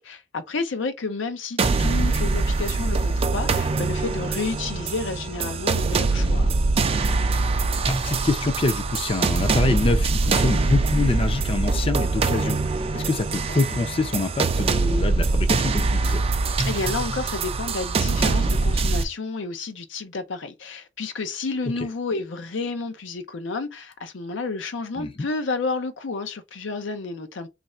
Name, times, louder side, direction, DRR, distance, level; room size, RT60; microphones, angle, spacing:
voice 1, 0.0-6.6 16.6-27.5, left 3 dB, 80° left, 0.6 m, -31 dB
sound 1, 1.6-19.0, right 3 dB, 30° right, 0.4 m, -23 dB
voice 2, 7.9-12.6 12.9-16.2 21.8-21.9 25.0-25.3, left 3 dB, 30° left, 0.5 m, -26 dB
3.2 x 2.5 x 4.2 m
head